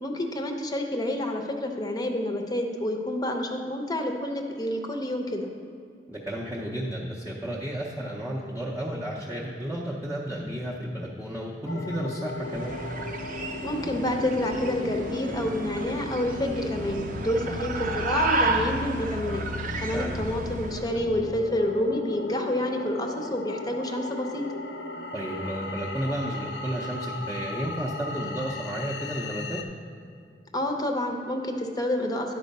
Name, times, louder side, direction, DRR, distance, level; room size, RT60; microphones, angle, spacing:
voice 1, 0.0-5.5 13.6-19.4 19.8-24.5 30.5-32.4, left 1 dB, 20° left, 3 dB, 0.7 m, -28 dB
voice 2, 6.1-12.8 19.9-20.2 25.1-29.6, equal, 15° right, -6 dB, 0.6 m, -32 dB
sound 1, 11.7-29.6, left 3 dB, 75° left, 0.6 m, -36 dB
sound 2, 12.3-21.0, right 3 dB, 50° right, 0.6 m, -32 dB
10.5 x 4.5 x 5.3 m, 2.4 s
head